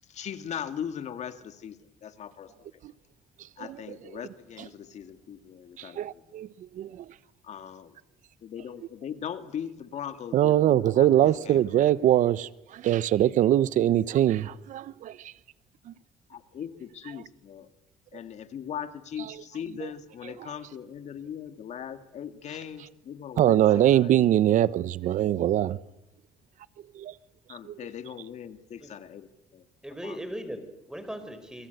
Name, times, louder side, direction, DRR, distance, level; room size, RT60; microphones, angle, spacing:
voice 1, 0.1-2.8 3.6-6.2 7.4-7.9 8.4-11.9 16.3-17.7 18.1-24.3 27.5-29.7 30.0-30.2, left 8 dB, 55° left, 2.1 m, -39 dB
voice 2, 3.4-3.8 4.6-4.7 5.8-7.1 10.3-15.3 15.9-16.0 19.3-19.4 19.8-19.9 20.4-20.5 23.4-25.8 26.9-27.1 27.6-27.7, right 12 dB, 65° right, 1.0 m, -23 dB
voice 3, 29.8-31.7, equal, 5° right, 5.5 m, -39 dB
28.5 x 23.0 x 8.1 m
cardioid pair, 110°, 14 cm